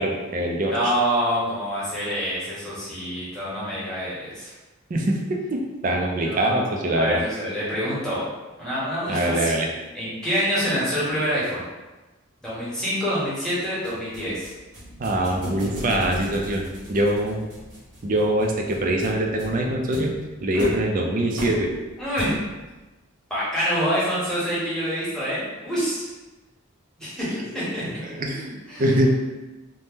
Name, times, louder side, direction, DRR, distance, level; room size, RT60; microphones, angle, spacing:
voice 1, 0.0-0.9 4.9-7.2 9.1-9.7 15.0-17.4 18.0-20.1 20.4-21.7 27.2-27.4 28.0-29.1, right 1 dB, 40° right, 1 dB, 0.4 m, -23 dB
voice 2, 0.6-4.5 6.2-8.3 8.6-9.5 9.9-11.6 12.4-14.5 20.5-20.7 22.0-22.3 23.3-26.1 27.0-27.8 28.7-29.0, equal, 5° left, -10 dB, 0.9 m, -26 dB
sound 1, 13.8-22.7, equal, 90° right, 1.2 m, -37 dB
2.7 x 2.0 x 3.4 m, 1.1 s
head